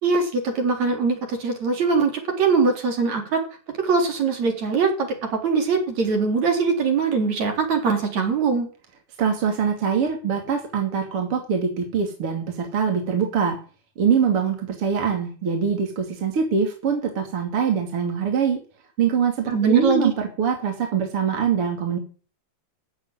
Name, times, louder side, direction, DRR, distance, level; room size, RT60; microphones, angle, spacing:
voice 1, 0.0-3.4 3.8-8.7 19.5-20.1, right 4 dB, 70° right, 3 dB, 5.0 m, -22 dB
voice 2, 9.2-13.6 14.0-18.6 19.0-22.0, right 6 dB, 50° right, 3 dB, 3.5 m, -23 dB
15.0 x 9.1 x 9.0 m, 0.38 s
omnidirectional pair, 3.3 m